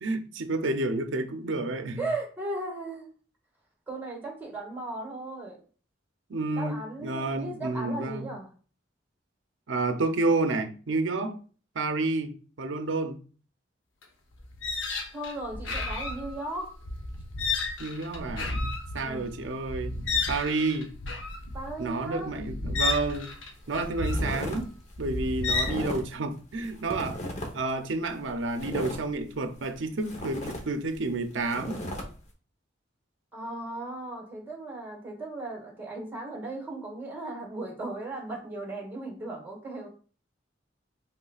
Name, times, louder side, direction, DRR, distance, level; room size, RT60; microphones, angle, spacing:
voice 1, 0.0-2.1 6.3-8.3 9.7-11.4 11.7-13.2 17.8-18.6 18.9-20.0 20.3-20.9 21.8-23.3 23.7-24.7 25.0-27.2 27.5-31.8, right 3 dB, 70° right, 0.6 m, -30 dB
voice 2, 2.0-3.1 3.9-5.6 6.5-8.5 15.1-16.7 19.0-19.3 21.5-22.3 33.3-39.9, right 2 dB, 10° right, 1.8 m, -36 dB
sound 1, 14.0-14.1 14.4-25.9, left 3 dB, 85° left, 0.8 m, -32 dB
sound 2, 23.1-23.4 23.7-24.6 24.9-26.2 26.5-27.7 28.1-29.7 30.0-32.0, equal, 40° left, 1.0 m, -36 dB
5.4 x 3.6 x 2.4 m
head